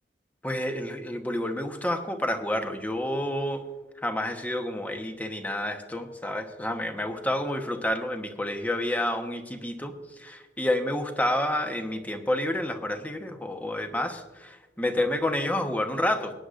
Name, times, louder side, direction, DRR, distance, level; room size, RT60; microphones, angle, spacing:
voice 1, 0.4-3.6 4.0-9.9 10.2-16.3, left 1 dB, 10° left, 5 dB, 1.1 m, -29 dB
23.0 x 9.8 x 2.5 m, 1.2 s
head